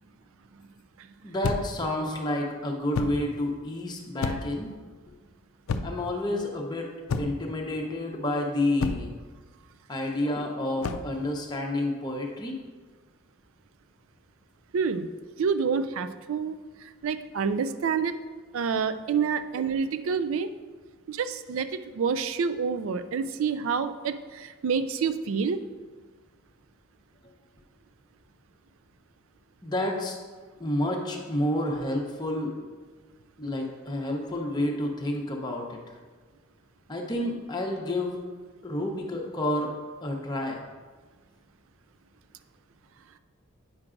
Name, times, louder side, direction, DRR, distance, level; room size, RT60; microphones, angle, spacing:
voice 1, 1.2-4.7 5.1-5.2 5.8-6.9 7.2-9.2 9.9-12.6 29.6-30.2 30.6-32.5 33.4-35.9 36.9-38.2 38.6-39.7 40.0-40.6, left 1 dB, 20° left, 0 dB, 0.7 m, -29 dB
sound 1, 1.4-1.8 2.9-3.3 4.2-4.6 5.7-6.1 7.1-7.5 8.8-9.2 10.8-11.1, left 4 dB, 80° left, 0.4 m, -30 dB
voice 2, 14.7-15.1 15.4-16.6 16.8-18.2 18.5-20.5 21.1-21.7 21.9-25.6, right 6 dB, 70° right, 11 dB, 0.4 m, -28 dB
8.6 x 6.0 x 2.5 m, 1.4 s
head